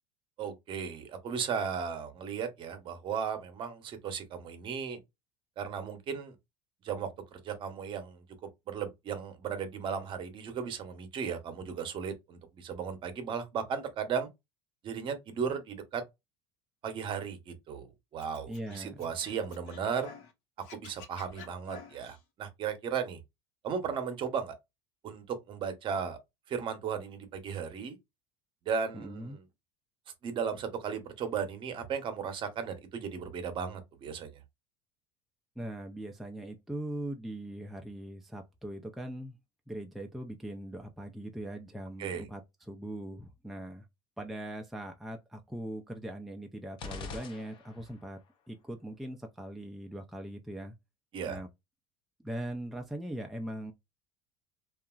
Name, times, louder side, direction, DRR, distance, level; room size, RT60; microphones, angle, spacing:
voice 1, 0.4-5.0 5.6-6.3 6.8-8.2 8.7-14.3 14.8-16.0 16.8-20.1 20.7-23.2 23.6-24.6 25.0-26.2 26.5-28.0 28.6-29.4 30.2-34.3 42.0-42.3 51.1-51.4, right 6 dB, 40° right, 0.8 m, -36 dB
Scratching (performance technique), 18.2-20.3 20.6-22.2, left 5 dB, 70° left, 0.9 m, -50 dB
voice 2, 18.5-19.1 28.9-29.4 35.6-39.4 39.7-43.9 44.2-48.2 48.5-50.7 51.3-51.5 52.2-53.7, right 1 dB, ahead, 0.4 m, -40 dB
sound 1, 46.8-48.1, left 4 dB, 40° left, 0.7 m, -43 dB
2.8 x 2.4 x 2.3 m
supercardioid pair, 100°, 12 cm